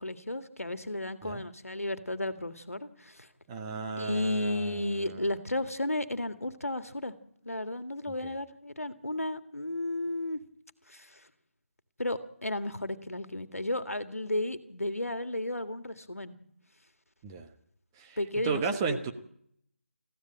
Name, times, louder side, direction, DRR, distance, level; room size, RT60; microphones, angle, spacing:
voice 1, 0.0-3.3 4.0-7.1 7.4-10.4 10.9-11.3 12.0-16.3 18.2-19.0, left 1 dB, 90° left, 9 dB, 1.8 m, -33 dB
voice 2, 3.5-5.2 17.2-17.5 18.0-18.2 18.4-19.1, right 5 dB, 15° right, 6 dB, 1.2 m, -34 dB
20.5 x 15.0 x 8.8 m, 0.72 s
figure-of-eight pair, 155°, 8 cm